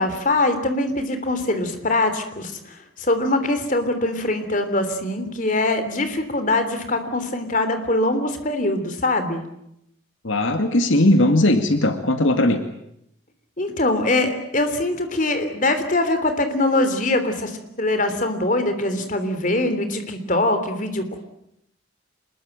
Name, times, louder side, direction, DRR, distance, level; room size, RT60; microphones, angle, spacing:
voice 1, 0.0-2.5 3.0-9.4 13.6-17.5 17.8-21.2, left 2 dB, 40° left, 8 dB, 3.2 m, -22 dB
voice 2, 10.2-12.6, left 1 dB, 75° left, 7 dB, 2.3 m, -18 dB
26.5 x 21.5 x 9.0 m, 0.78 s
head